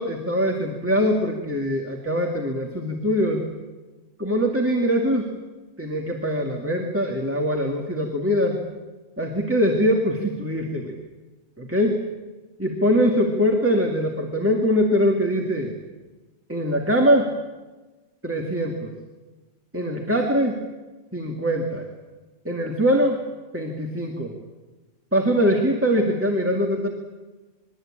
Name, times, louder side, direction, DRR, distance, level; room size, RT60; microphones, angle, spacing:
voice 1, 0.0-3.4 4.2-5.3 5.8-8.6 9.2-11.0 11.6-12.0 12.6-15.7 16.5-17.3 18.2-18.9 19.7-20.6 21.1-21.9 22.4-23.2 23.5-24.3 25.1-26.9, equal, 10° right, 1 dB, 2.2 m, -22 dB
27.5 x 22.0 x 8.8 m, 1.2 s
omnidirectional pair, 1.4 m